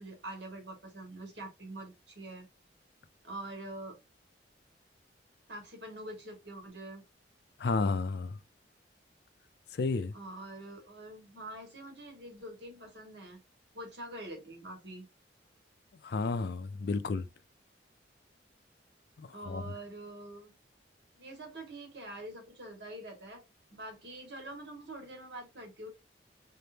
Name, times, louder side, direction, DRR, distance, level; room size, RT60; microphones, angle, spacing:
voice 1, 0.0-2.5 3.2-4.0 5.5-7.0 10.1-13.4 13.7-15.0 19.3-20.5 21.2-23.4 23.7-25.9, right 1 dB, 70° right, 1.7 m, -45 dB
voice 2, 7.6-8.4 9.7-10.1 16.0-17.3 19.2-19.6, left 3 dB, 60° left, 0.4 m, -32 dB
3.8 x 3.5 x 2.7 m
head